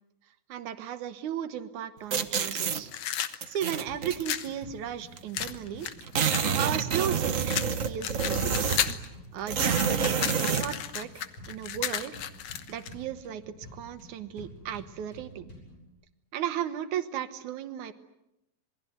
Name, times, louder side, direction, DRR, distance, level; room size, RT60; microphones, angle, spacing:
voice 1, 0.5-2.9 3.5-5.9 6.5-8.8 9.3-12.2 12.7-13.4 13.7-15.5 16.3-17.9, right 10 dB, 85° right, 11 dB, 2.6 m, -35 dB
sound 1, 2.1-2.8 3.4-4.2 5.2-5.3 5.5-5.6 5.8-9.0 9.5-10.7, right 6 dB, 60° right, 0.8 m, -28 dB
sound 2, 2.9-4.5 5.3-7.1 7.5-9.1 9.4-12.9, left 10 dB, 65° left, 2.2 m, -33 dB
sound 3, 3.9-15.9, left 1 dB, 45° left, 8.9 m, -49 dB
27.5 x 21.0 x 9.3 m, 0.86 s
omnidirectional pair, 3.3 m